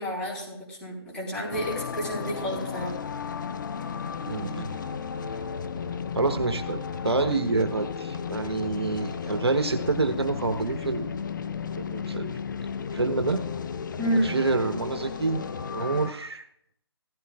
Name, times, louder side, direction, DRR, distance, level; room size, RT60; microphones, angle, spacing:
voice 1, 0.0-3.0 14.0-14.4, equal, 5° left, -6 dB, 4.0 m, -30 dB
sound 1, 1.5-16.1, left 6 dB, 45° left, 0.7 m, -34 dB
voice 2, 4.3-4.7 6.1-6.8 7.0-11.1 11.8-12.3 12.9-13.4 14.2-15.4 15.7-16.5, right 3 dB, 70° right, 6 dB, 1.2 m, -27 dB
16.0 x 15.0 x 2.4 m, 0.71 s
figure-of-eight pair, 150°, 14 cm